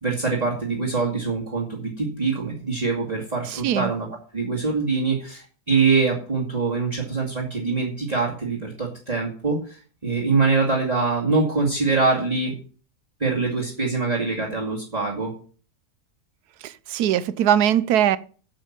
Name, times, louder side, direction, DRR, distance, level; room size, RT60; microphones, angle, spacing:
voice 1, 0.0-4.1 4.3-12.5 13.2-15.3, right 4 dB, 25° right, 2.4 m, -24 dB
voice 2, 3.5-3.9 16.6-18.2, right 10 dB, 85° right, 1.2 m, -21 dB
8.9 x 7.7 x 7.4 m
omnidirectional pair, 1.6 m